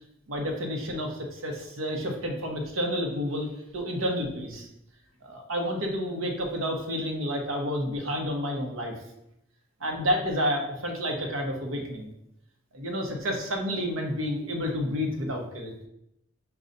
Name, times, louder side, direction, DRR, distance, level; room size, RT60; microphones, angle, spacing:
voice 1, 0.3-3.5 3.7-4.7 5.2-8.9 9.8-12.1 12.7-15.7, equal, 85° right, 2 dB, 0.8 m, -30 dB
5.2 x 2.3 x 3.8 m, 0.79 s
head